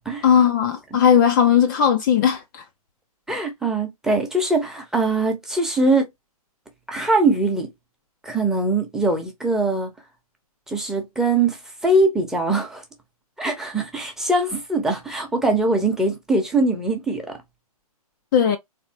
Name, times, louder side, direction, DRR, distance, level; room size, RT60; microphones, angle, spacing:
voice 1, 0.2-2.6 18.3-18.6, left 8 dB, 35° left, 0.6 m, -17 dB
voice 2, 3.3-6.1 6.9-7.7 8.2-9.9 10.7-12.8 13.4-17.4, right 2 dB, ahead, 0.9 m, -22 dB
3.7 x 3.4 x 2.8 m
hypercardioid pair, 135°, 19 cm